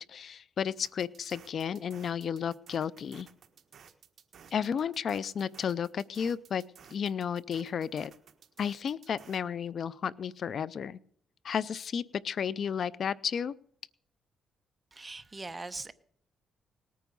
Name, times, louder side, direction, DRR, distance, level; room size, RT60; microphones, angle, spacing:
voice 1, 0.0-3.3 4.5-6.6 6.9-8.1 8.6-11.0 11.4-13.5, left 7 dB, 55° left, 0.5 m, -33 dB
sound 1, 0.8-9.4, right 7 dB, 55° right, 1.5 m, -56 dB
voice 2, 14.9-15.9, right 3 dB, 20° right, 0.9 m, -41 dB
19.0 x 9.3 x 5.4 m
cardioid pair, 105°, 0 cm